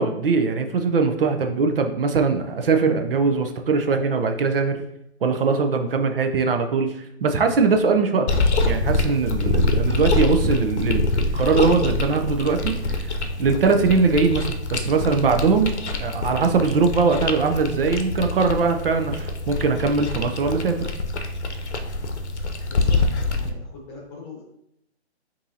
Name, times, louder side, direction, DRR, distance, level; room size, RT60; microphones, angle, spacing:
voice 1, 0.0-4.8 5.2-13.1 13.4-15.7 16.0-20.9, right 4 dB, 60° right, 6 dB, 0.5 m, -21 dB
sound 1, 8.3-23.5, left 2 dB, 90° left, 0.7 m, -25 dB
voice 2, 22.6-24.4, left 2 dB, 15° left, -3 dB, 1.0 m, -42 dB
5.2 x 2.7 x 2.7 m, 0.77 s
hypercardioid pair, 155°, 33 cm